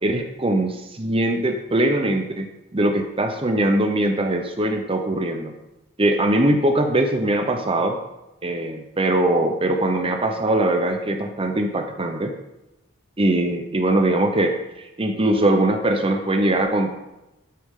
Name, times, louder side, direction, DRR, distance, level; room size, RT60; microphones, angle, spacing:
voice 1, 0.0-2.5 2.7-5.5 6.0-8.0 8.4-12.3 13.2-16.9, right 1 dB, 25° right, 5 dB, 0.8 m, -21 dB
13.0 x 8.5 x 3.7 m, 0.97 s
head